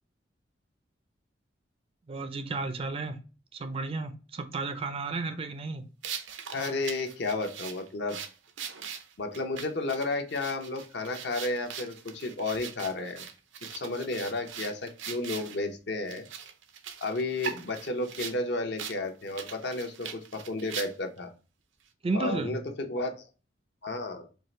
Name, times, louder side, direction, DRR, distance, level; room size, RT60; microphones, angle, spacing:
voice 1, 2.1-3.2 3.5-5.9 22.0-22.6, right 3 dB, 30° right, 0.4 m, -33 dB
sound 1, 6.0-15.6 16.1-18.4 18.8-19.0 19.3-21.2, right 7 dB, 80° right, 0.5 m, -41 dB
voice 2, 6.5-8.2 9.2-13.3 13.7-16.2 17.0-21.3 22.1-23.2 23.8-24.3, left 2 dB, 65° left, 0.7 m, -32 dB
4.5 x 2.5 x 3.1 m
head